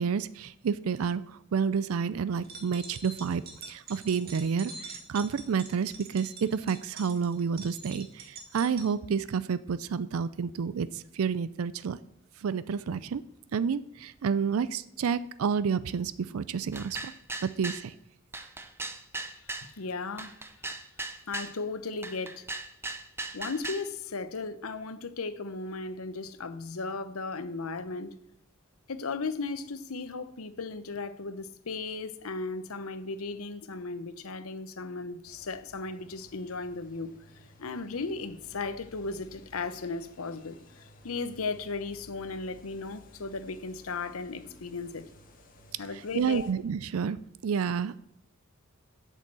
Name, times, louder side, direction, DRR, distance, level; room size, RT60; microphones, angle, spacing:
voice 1, 0.0-12.0 12.4-13.2 13.5-17.1 17.4-17.9 46.1-47.2 47.4-48.0, right 6 dB, 80° right, 0.4 m, -30 dB
sound 1, 2.3-8.9, right 4 dB, 45° right, 2.1 m, -45 dB
sound 2, 16.7-17.9 18.3-19.7 20.2-21.6 22.0-23.9, right 2 dB, 10° right, 0.6 m, -38 dB
voice 2, 19.3-20.3 21.3-22.4 23.3-28.1 28.9-37.1 37.6-45.0 45.8-46.5, left 3 dB, 85° left, 0.8 m, -36 dB
sound 3, 35.2-46.5, left 1 dB, 40° left, 1.6 m, -56 dB
8.3 x 6.5 x 7.5 m
head